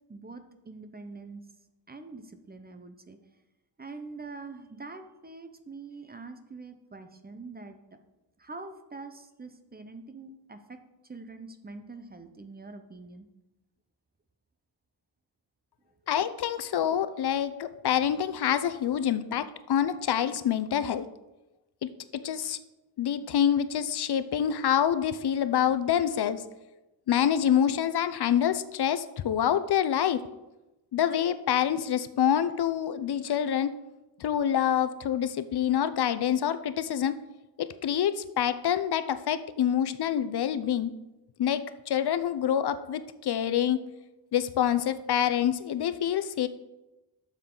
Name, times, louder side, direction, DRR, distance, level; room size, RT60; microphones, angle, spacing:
voice 1, 0.1-1.5 1.9-3.3 3.8-7.8 8.4-13.3, right 3 dB, 20° right, 8 dB, 0.7 m, -44 dB
voice 2, 16.1-21.1 21.8-21.9 22.2-22.6 23.0-26.4 27.1-30.2 30.9-33.7 34.2-37.1 37.6-40.9 41.4-43.8 44.3-46.5, left 9 dB, 65° left, 12 dB, 0.6 m, -26 dB
12.0 x 7.3 x 3.9 m, 1.0 s
wide cardioid pair, 165°, 41 cm